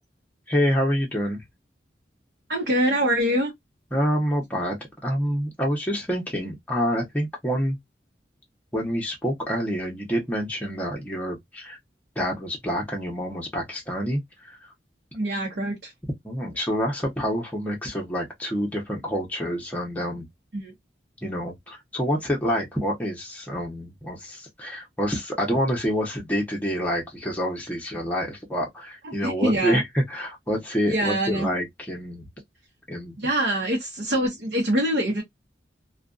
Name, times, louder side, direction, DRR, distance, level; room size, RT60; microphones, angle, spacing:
voice 1, 0.5-1.4 3.9-7.8 8.7-11.8 12.2-14.6 16.2-20.3 21.2-32.3 32.9-33.2, equal, 10° left, 0.8 m, -27 dB
voice 2, 2.5-3.5 15.1-15.9 20.5-20.7 29.0-29.8 30.9-31.5 33.2-35.2, right 1 dB, 70° right, 0.8 m, -24 dB
2.4 x 2.3 x 2.4 m
head